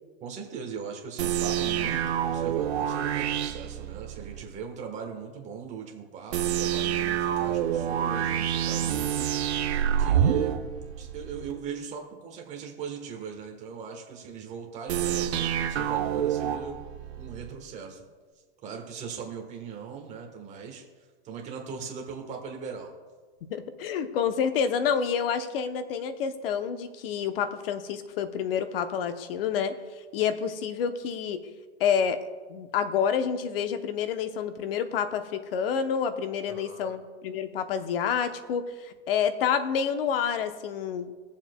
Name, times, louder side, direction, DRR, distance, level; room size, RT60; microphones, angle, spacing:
voice 1, 0.2-10.6 11.0-16.9 17.2-18.1 18.6-20.8 21.2-22.9 36.4-37.0, right 6 dB, 20° right, 2 dB, 1.2 m, -39 dB
sound 1, 1.2-4.5 6.3-11.5 14.9-17.5, right 10 dB, 75° right, 0.8 m, -27 dB
voice 2, 23.5-29.8 30.1-31.4 31.8-32.2 32.5-41.1, left 7 dB, 60° left, 9 dB, 0.9 m, -28 dB
20.0 x 7.2 x 2.2 m, 1.5 s
supercardioid pair, 150°, 33 cm